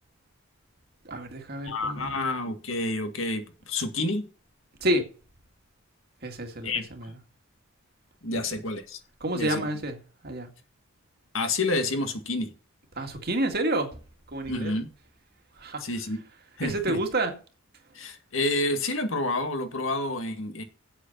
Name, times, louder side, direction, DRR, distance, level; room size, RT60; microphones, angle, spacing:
voice 1, 1.0-2.2 4.8-5.0 6.2-7.1 8.3-8.4 9.2-10.5 13.0-13.9 14.3-14.7 15.6-15.8 16.6-17.4, right 1 dB, 45° right, 2.1 m, -29 dB
voice 2, 1.6-4.2 6.6-7.1 8.2-9.0 9.3-9.7 11.3-12.5 14.5-14.9 15.8-16.2 16.6-17.0 17.9-20.6, left 2 dB, 70° left, 2.0 m, -29 dB
8.2 x 8.1 x 7.3 m
head